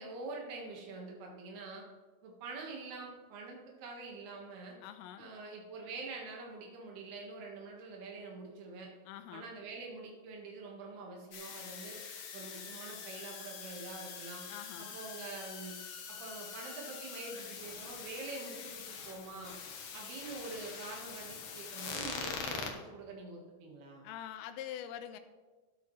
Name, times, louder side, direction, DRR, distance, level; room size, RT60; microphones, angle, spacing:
voice 1, 0.0-1.8 2.2-4.8 5.2-8.9 9.3-12.0 12.3-14.4 14.8-15.8 16.1-19.5 19.9-24.1, right 3 dB, 90° right, -1 dB, 3.6 m, -45 dB
voice 2, 4.8-5.3 9.1-9.5 14.5-15.0 24.0-25.2, left 10 dB, 85° left, 9 dB, 2.6 m, -45 dB
sound 1, 11.3-22.7, left 6 dB, 65° left, 2.4 m, -44 dB
13.0 x 12.0 x 3.2 m, 1.3 s
omnidirectional pair, 4.4 m